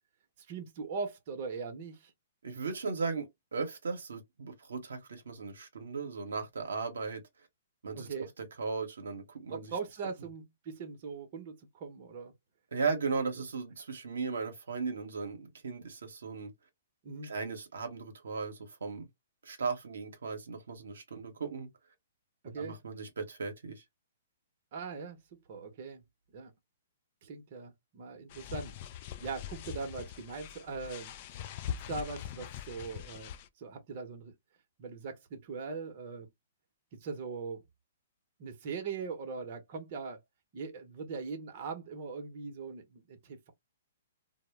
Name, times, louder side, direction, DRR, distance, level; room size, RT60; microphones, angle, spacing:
voice 1, 0.5-2.1 7.9-8.3 9.5-12.3 13.3-13.4 17.0-17.3 22.4-22.8 24.7-25.2 25.5-26.0 26.3-26.5 27.2-28.7 29.2-31.1 31.7-33.3 33.6-34.3 34.8-36.3 37.0-37.6 38.4-40.2 40.5-43.5, right 5 dB, 45° right, 0.7 m, -40 dB
voice 2, 2.4-7.2 7.8-8.3 8.6-9.7 12.7-16.5 17.2-19.1 19.4-21.7 22.5-23.8, right 4 dB, 80° right, 0.7 m, -37 dB
sound 1, 28.3-33.5, left 10 dB, 45° left, 0.3 m, -42 dB
2.1 x 2.0 x 3.2 m
hypercardioid pair, 135°, 0 cm